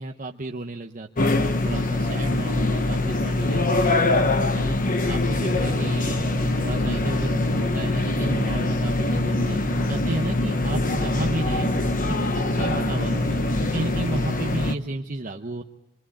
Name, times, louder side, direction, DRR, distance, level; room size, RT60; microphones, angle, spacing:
voice 1, 0.0-4.0 4.5-4.8 5.1-11.7 12.1-15.6, right 2 dB, 40° right, 3 dB, 1.0 m, -33 dB
sound 1, 1.2-14.7, left 2 dB, 45° left, 1.1 m, -23 dB
sound 2, 5.5-14.3, equal, 85° left, 5.4 m, -33 dB
28.0 x 23.0 x 8.6 m, 0.88 s
head